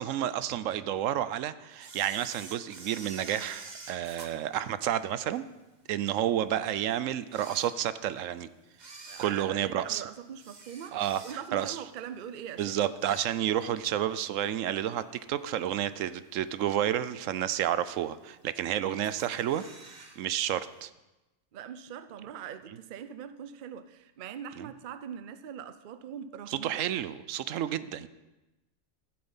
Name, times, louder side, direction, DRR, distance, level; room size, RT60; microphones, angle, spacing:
voice 1, 0.0-5.4 5.9-8.5 9.2-10.0 10.9-11.8 12.6-15.0 15.3-19.6 20.2-20.9 24.6-24.7 26.5-28.1, right 11 dB, 80° right, 14 dB, 0.9 m, -30 dB
Camera, 1.8-5.4 5.9-6.0 6.7-6.8 7.2-8.2 8.7-11.7 12.1-12.4 12.7-13.8 14.1-14.2 15.2-15.3 15.8-16.2 16.7-16.8 16.9-17.0 17.2-17.3 18.1-18.6 19.0-20.2 20.4-20.5 20.8-20.9, right 3 dB, 35° right, 1.1 m, -48 dB
voice 2, 9.0-12.8 21.5-26.9, right 8 dB, 55° right, 11 dB, 0.6 m, -42 dB
14.0 x 7.8 x 5.6 m, 1.0 s
omnidirectional pair, 1.3 m